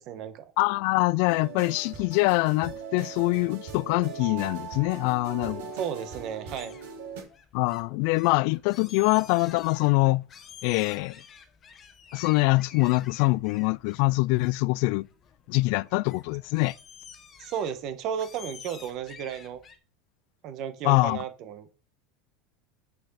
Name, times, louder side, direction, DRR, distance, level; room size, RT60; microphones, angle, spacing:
voice 1, 0.0-0.4 5.7-6.8 17.4-19.6 20.4-21.7, right 8 dB, 45° right, 1.3 m, -34 dB
voice 2, 0.6-5.7 7.5-10.3 10.6-11.2 12.1-15.1 15.5-16.8 20.8-21.2, left 24 dB, 60° left, 0.3 m, -24 dB
sound 1, 1.3-7.2, right 6 dB, 80° right, 4.9 m, -40 dB
sound 2, 3.9-19.8, left 7 dB, 30° left, 1.3 m, -51 dB
8.3 x 6.2 x 4.2 m
supercardioid pair, 140°, 0 cm